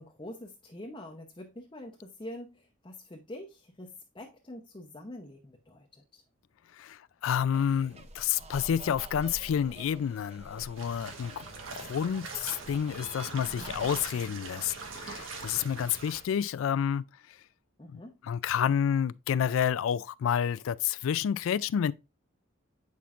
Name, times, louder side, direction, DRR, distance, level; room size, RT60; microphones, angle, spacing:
voice 1, 0.0-3.9 4.1-6.2 17.8-18.1, left 1 dB, 25° left, 0.7 m, -45 dB
voice 2, 6.8-11.4 11.8-17.1 17.9-21.9, left 8 dB, 75° left, 0.3 m, -29 dB
sound 1, 7.5-14.0, right 2 dB, 30° right, 0.6 m, -48 dB
sound 2, 10.8-16.2, right 4 dB, 70° right, 1.2 m, -42 dB
8.3 x 5.9 x 2.4 m
head